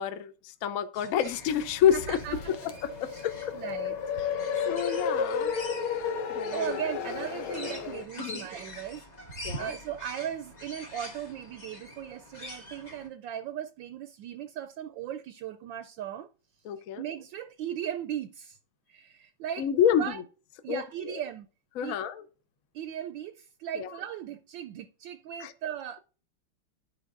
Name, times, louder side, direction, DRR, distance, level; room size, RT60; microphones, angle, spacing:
voice 1, 0.0-2.2 2.5-3.5 4.7-5.5 6.3-6.8 8.2-8.4 9.4-9.7 16.7-17.0 19.6-20.0 20.7-21.1 21.8-22.2 23.8-23.9 25.4-25.5, left 9 dB, 65° left, 0.8 m, -28 dB
sound 1, 0.9-13.1, left 1 dB, 25° left, 1.0 m, -45 dB
sound 2, 1.5-8.0, left 6 dB, 85° left, 1.7 m, -33 dB
voice 2, 1.9-2.7 3.0-3.3 3.5-4.0 5.8-9.1 9.5-16.3 17.0-18.6 18.9-19.7 20.0-20.2 20.6-21.5 21.8-22.0 22.7-26.0, right 10 dB, 75° right, 1.2 m, -37 dB
13.5 x 4.9 x 2.5 m
omnidirectional pair, 2.2 m